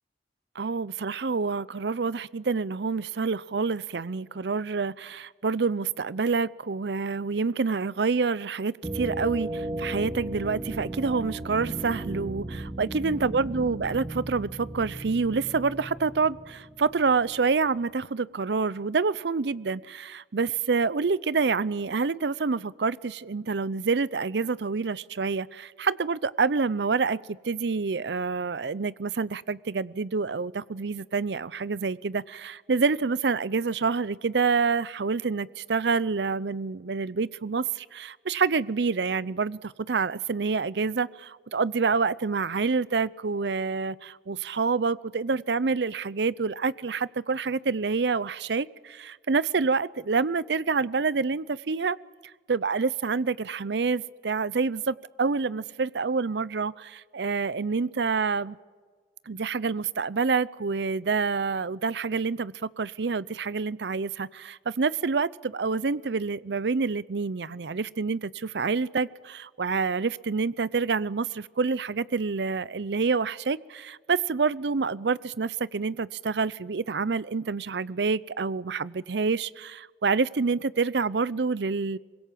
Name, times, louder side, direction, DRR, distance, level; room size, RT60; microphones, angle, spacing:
voice 1, 0.6-52.0 52.5-58.6 59.3-82.0, right 4 dB, 70° right, 19 dB, 0.6 m, -27 dB
sound 1, 8.8-17.5, right 1 dB, 20° right, 2.0 m, -36 dB
24.5 x 22.0 x 7.4 m, 1.5 s
head